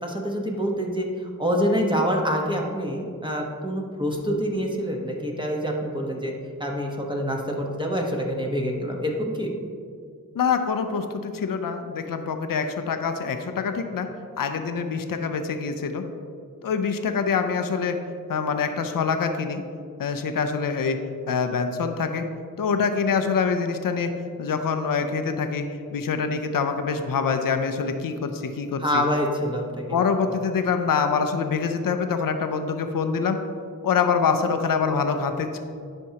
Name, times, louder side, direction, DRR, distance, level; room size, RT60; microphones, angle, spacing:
voice 1, 0.0-6.3 6.6-9.5 28.8-30.0 30.3-30.4, equal, 15° right, 0 dB, 1.0 m, -26 dB
voice 2, 10.3-14.1 14.4-16.0 16.6-18.0 18.3-19.6 20.0-22.2 22.6-24.1 24.4-29.0 29.9-33.4 33.8-35.6, left 5 dB, 75° left, 7 dB, 0.6 m, -25 dB
11.0 x 4.4 x 2.8 m, 2.2 s
cardioid pair, 55°, 34 cm